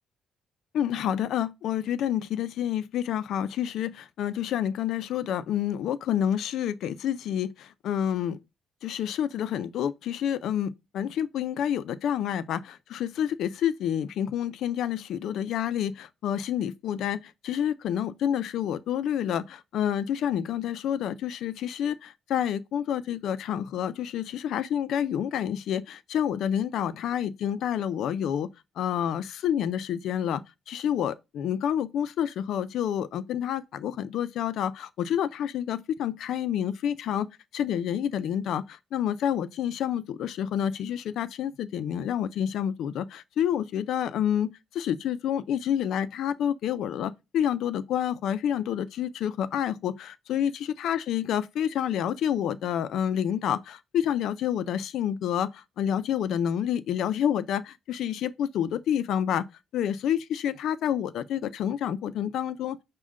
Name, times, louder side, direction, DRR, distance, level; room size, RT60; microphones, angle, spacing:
voice 1, 0.7-8.4 8.8-28.5 28.8-37.3 37.5-59.5 59.7-62.8, left 9 dB, 65° left, 0.4 m, -28 dB
6.2 x 2.1 x 3.6 m
cardioid pair, 175°, 0 cm